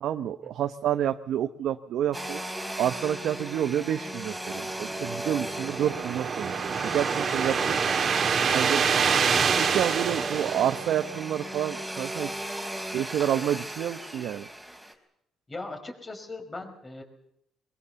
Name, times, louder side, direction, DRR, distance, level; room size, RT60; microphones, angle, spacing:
voice 1, 0.0-2.4 2.8-6.5 6.8-7.8 8.5-9.1 9.7-12.4 12.9-14.5, right 10 dB, 70° right, 8 dB, 0.9 m, -29 dB
Domestic sounds home sounds, 2.1-14.9, right 1 dB, 5° right, 4.0 m, -37 dB
sound 1, 4.9-11.5, right 6 dB, 45° right, 2.2 m, -26 dB
voice 2, 7.5-8.1 15.5-17.0, left 2 dB, 20° left, 4 dB, 5.2 m, -40 dB
23.0 x 22.0 x 7.0 m, 0.77 s
cardioid pair, 125°, 0 cm